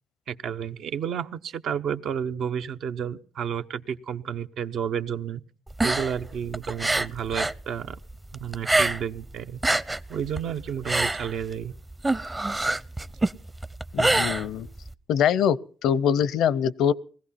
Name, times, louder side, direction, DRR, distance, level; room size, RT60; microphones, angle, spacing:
voice 1, 0.3-5.4 5.8-8.0 8.3-9.6 10.1-11.7, right 8 dB, 70° right, 0.9 m, -31 dB
sound 1, 5.7-7.6 7.9-9.2 9.5-14.9, right 2 dB, 20° right, 0.7 m, -25 dB
voice 2, 13.9-14.7 15.1-16.9, left 8 dB, 80° left, 0.6 m, -23 dB
20.0 x 15.5 x 4.2 m
cardioid pair, 90°, 0 cm